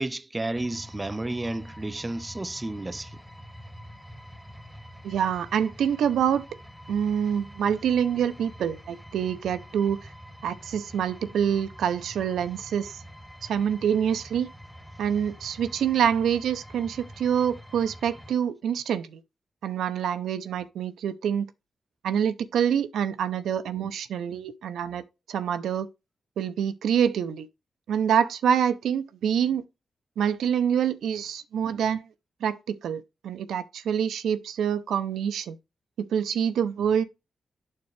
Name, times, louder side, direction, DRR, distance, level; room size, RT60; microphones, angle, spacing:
voice 1, 0.0-3.2, right 2 dB, 20° right, 0.4 m, -32 dB
sound 1, 0.5-18.3, equal, 5° left, 1.1 m, -46 dB
voice 2, 5.0-6.5 6.9-10.1 10.4-13.0 13.4-14.5 15.0-19.2 19.6-21.5 22.0-25.0 25.3-25.9 26.4-27.5 27.9-29.6 30.2-32.1 32.4-35.6 36.0-37.0, right 8 dB, 90° right, 0.6 m, -26 dB
9.2 x 4.4 x 3.2 m
cardioid pair, 65°, 0 cm